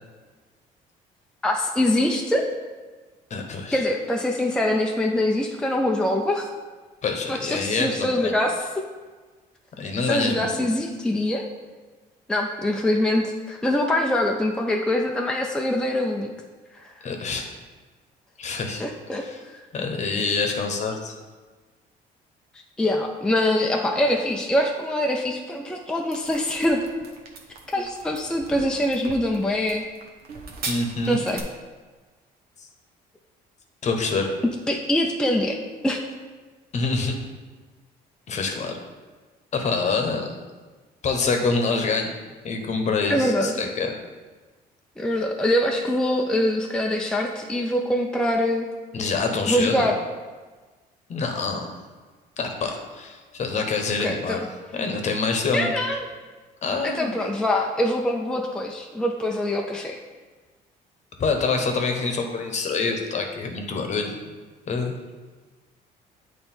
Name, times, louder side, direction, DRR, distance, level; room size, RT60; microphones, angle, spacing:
voice 1, 1.4-2.5 3.7-6.5 7.3-8.6 10.0-11.4 12.3-16.3 16.8-16.9 18.8-19.2 22.8-26.8 27.7-29.9 31.1-31.4 34.7-35.6 35.8-36.0 43.1-43.5 45.0-48.7 49.4-50.0 54.0-54.4 55.5-56.1 56.8-60.0, left 1 dB, 5° left, 1 dB, 0.5 m, -24 dB
voice 2, 3.3-3.8 7.0-8.3 9.8-10.5 17.0-17.5 18.4-18.8 19.1-19.4 19.7-21.1 30.7-31.2 33.8-34.3 36.7-37.1 38.3-38.8 39.5-40.3 41.0-42.1 42.4-43.9 48.9-49.9 51.1-51.8 52.4-54.5 54.7-55.7 56.6-57.1 61.2-64.1 64.7-64.9, left 4 dB, 45° left, 4 dB, 1.0 m, -26 dB
sound 1, 26.1-31.4, right 4 dB, 65° right, 1.0 m, -38 dB
8.7 x 3.3 x 4.4 m, 1.3 s
cardioid pair, 110°, 17 cm